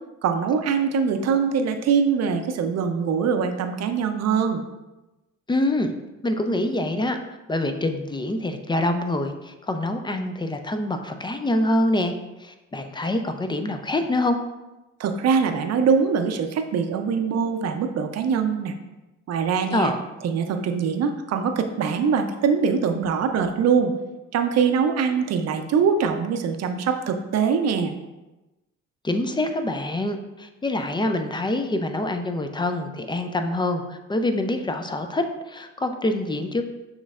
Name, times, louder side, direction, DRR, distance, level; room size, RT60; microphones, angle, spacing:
voice 1, 0.2-4.6 15.0-18.7 19.3-19.9 20.2-23.9 24.3-27.9, right 6 dB, 60° right, 7 dB, 0.5 m, -23 dB
voice 2, 5.5-5.9 6.2-7.2 7.5-12.1 12.4-14.4 19.7-20.0 29.0-36.6, left 1 dB, 15° left, 6 dB, 0.3 m, -25 dB
6.2 x 3.2 x 2.4 m, 1.0 s
cardioid pair, 90°, 30 cm